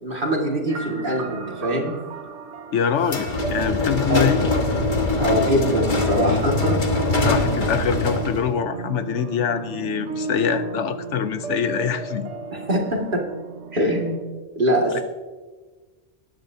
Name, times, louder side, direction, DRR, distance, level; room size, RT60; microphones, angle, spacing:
voice 1, 0.0-2.0 4.1-4.3 5.2-6.9 12.5-13.3 13.7-14.2 14.6-15.0, equal, 45° right, -1 dB, 2.3 m, -23 dB
sound 1, 0.7-14.2, right 4 dB, 85° right, 1.3 m, -34 dB
voice 2, 2.7-4.5 7.2-12.3, left 7 dB, 80° left, 10 dB, 1.0 m, -24 dB
sound 2, 3.0-8.5, left 2 dB, 45° left, 1.4 m, -23 dB
20.0 x 10.5 x 2.8 m, 1.3 s
omnidirectional pair, 1.2 m